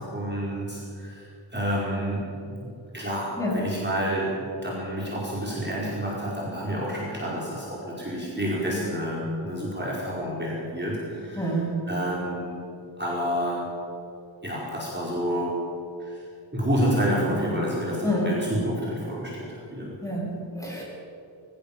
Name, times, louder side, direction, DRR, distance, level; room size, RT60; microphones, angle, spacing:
voice 1, 0.0-12.6 13.0-13.7 14.4-15.5 16.0-16.2 16.5-19.9, equal, 25° right, -5 dB, 5.0 m, -29 dB
voice 2, 11.4-11.9 18.0-18.4 20.0-20.8, equal, 5° left, -3 dB, 7.2 m, -28 dB
23.5 x 16.0 x 7.4 m, 2.6 s
wide cardioid pair, 95°, 46 cm